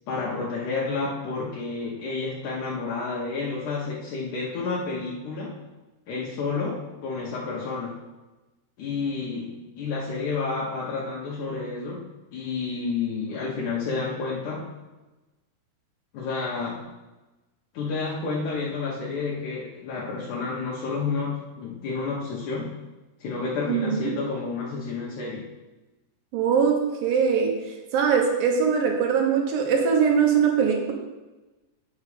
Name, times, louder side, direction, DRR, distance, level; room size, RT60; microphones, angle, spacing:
voice 1, 0.1-5.6 6.1-8.0 8.8-12.0 12.3-14.7 16.1-16.9 17.7-22.7 23.2-25.5, left 4 dB, 85° left, -4 dB, 1.7 m, -30 dB
voice 2, 23.7-24.1 26.3-26.8 27.0-27.5 27.9-30.9, right 6 dB, 65° right, 1 dB, 2.5 m, -21 dB
8.3 x 6.6 x 4.9 m, 1.1 s
omnidirectional pair, 5.1 m